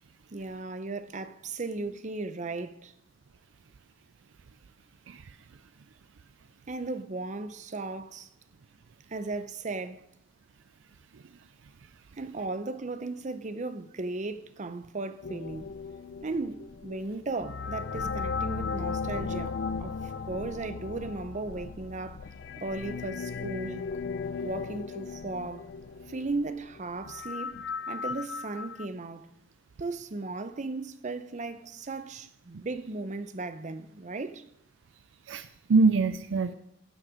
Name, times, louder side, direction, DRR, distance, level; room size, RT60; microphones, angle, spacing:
voice 1, 0.3-2.9 6.7-8.3 9.1-10.1 12.2-15.7 16.2-20.0 20.3-22.3 22.6-23.9 24.4-25.7 26.1-29.3 29.8-34.4, right 3 dB, 40° right, 0.6 m, -36 dB
sound 1, 15.2-28.9, left 5 dB, 60° left, 0.4 m, -36 dB
voice 2, 35.3-36.5, right 4 dB, 75° right, 0.4 m, -24 dB
14.5 x 6.5 x 5.0 m
head